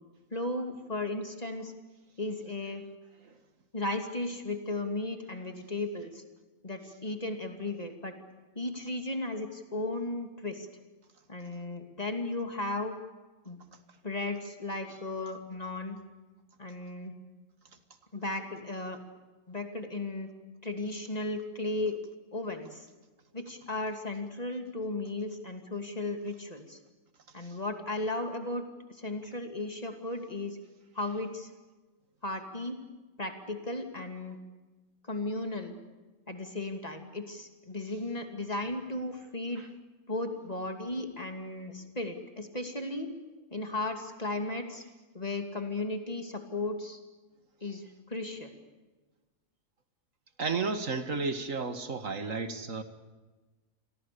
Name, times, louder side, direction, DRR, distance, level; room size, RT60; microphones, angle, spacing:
voice 1, 0.3-1.7 2.2-2.9 3.7-6.2 6.6-8.1 8.5-10.7 11.3-12.9 13.4-13.6 14.0-16.0 16.6-17.1 18.1-19.0 19.5-20.3 20.6-22.0 22.3-22.9 23.3-26.8 27.3-30.6 30.9-31.5 32.2-32.8 33.2-34.4 35.0-35.8 36.3-39.6 40.1-43.1 43.5-44.8 45.1-47.0 47.6-48.5, left 2 dB, 30° left, 5 dB, 2.7 m, -35 dB
voice 2, 50.4-52.8, right 4 dB, 65° right, 9 dB, 2.2 m, -32 dB
29.5 x 23.0 x 6.9 m, 1.2 s
omnidirectional pair, 1.5 m